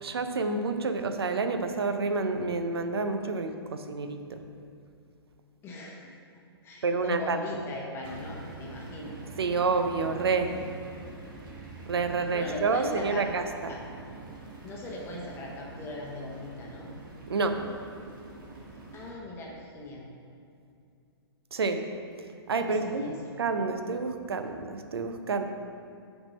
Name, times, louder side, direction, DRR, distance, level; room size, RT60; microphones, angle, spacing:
voice 1, 0.0-4.4 6.8-7.4 9.4-10.5 11.9-13.7 17.3-17.6 21.5-21.8 22.5-25.4, right 4 dB, 70° right, 7 dB, 0.5 m, -29 dB
voice 2, 5.6-6.2 6.6-9.1 12.3-13.3 13.7-13.8 14.6-16.9 18.9-20.1 22.6-23.3, left 2 dB, 20° left, -3 dB, 0.9 m, -39 dB
sound 1, 8.0-19.1, right 2 dB, 50° right, 1.2 m, -45 dB
5.9 x 3.6 x 5.2 m, 2.5 s
figure-of-eight pair, 115°, 14 cm